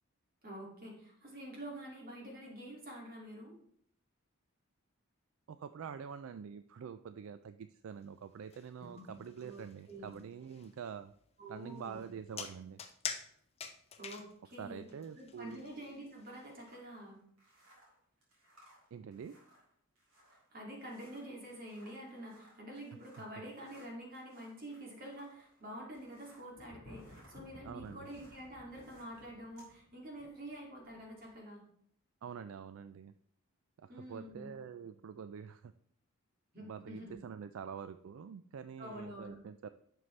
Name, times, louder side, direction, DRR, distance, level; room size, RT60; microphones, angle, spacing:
voice 1, 0.4-3.5 8.8-10.1 11.4-12.1 14.0-14.9 15.1-17.2 20.5-31.6 33.9-34.5 36.5-37.2 38.8-39.4, right 1 dB, 40° right, -2 dB, 2.4 m, -48 dB
voice 2, 5.5-11.1 11.5-12.8 14.6-15.6 18.9-19.4 27.6-28.1 32.2-33.1 33.8-35.7 36.6-39.7, right 7 dB, 65° right, 12 dB, 0.3 m, -46 dB
sound 1, 8.0-16.7, left 7 dB, 30° left, 0.6 m, -47 dB
sound 2, 16.6-26.6 26.9-29.7, right 1 dB, 85° right, 4.1 m, -65 dB
Thunder, 25.9-31.4, left 1 dB, 75° left, 1.5 m, -57 dB
11.0 x 6.5 x 3.2 m, 0.67 s
head